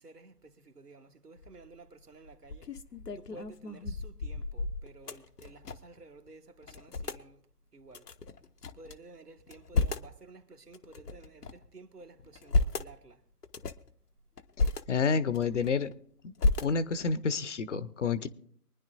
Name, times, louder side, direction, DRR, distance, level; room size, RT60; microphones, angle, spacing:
voice 1, 0.0-2.7 3.1-7.4 7.7-8.1 8.7-13.2, right 3 dB, 80° right, 1.6 m, -53 dB
sound 1, 1.4-1.7 2.2-6.0 6.3-6.4 6.6-7.2 7.9-8.9 9.4-10.1 10.7-11.7 12.2-12.9 13.4-13.9 14.4-14.8 15.3-15.9 16.4-17.1, left 3 dB, 80° left, 0.9 m, -32 dB
voice 2, 14.9-15.9 16.2-16.3 16.6-18.3, left 5 dB, 50° left, 0.8 m, -29 dB
24.0 x 10.0 x 2.7 m
figure-of-eight pair, 135°, 46 cm